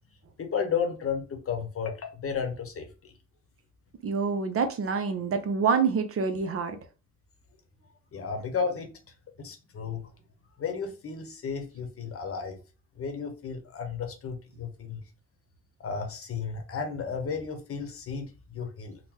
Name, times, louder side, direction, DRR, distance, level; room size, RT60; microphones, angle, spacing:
voice 1, 0.4-3.1 8.1-8.9 9.4-10.1 10.6-12.6 13.0-15.0 15.8-19.0, left 6 dB, 50° left, 0.8 m, -33 dB
voice 2, 4.0-6.8, right 5 dB, 50° right, 0.6 m, -27 dB
3.7 x 2.1 x 2.9 m
cardioid pair, 90°, 30 cm